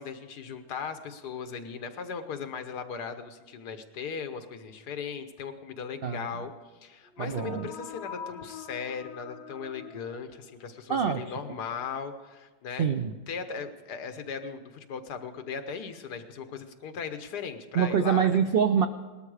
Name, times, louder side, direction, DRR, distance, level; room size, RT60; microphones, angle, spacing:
voice 1, 0.0-6.5 6.8-12.9 13.3-18.2, left 6 dB, 80° left, 8 dB, 1.6 m, -38 dB
sound 1, 7.0-10.9, left 7 dB, 45° left, 1.3 m, -44 dB
voice 2, 7.2-7.7 10.9-11.3 12.8-13.1 17.7-18.9, right 7 dB, 80° right, 8 dB, 0.5 m, -25 dB
19.0 x 12.5 x 4.9 m, 1.3 s
omnidirectional pair, 1.7 m